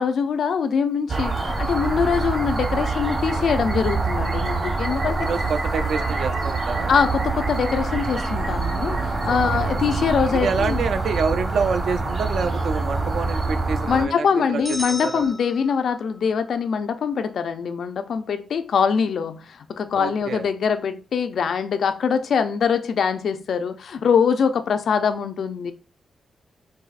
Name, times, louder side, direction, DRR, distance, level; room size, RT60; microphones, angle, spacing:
voice 1, 0.0-5.3 6.9-10.8 13.9-25.7, left 6 dB, 70° left, 0.4 m, -23 dB
sound 1, 1.1-14.1, right 3 dB, 40° right, 1.0 m, -25 dB
voice 2, 5.2-6.9 9.3-9.7 10.4-15.3 20.0-20.4, right 5 dB, 75° right, 0.3 m, -27 dB
sound 2, 14.6-16.2, equal, 10° right, 0.5 m, -35 dB
4.6 x 2.7 x 2.4 m
wide cardioid pair, 150°, 0 cm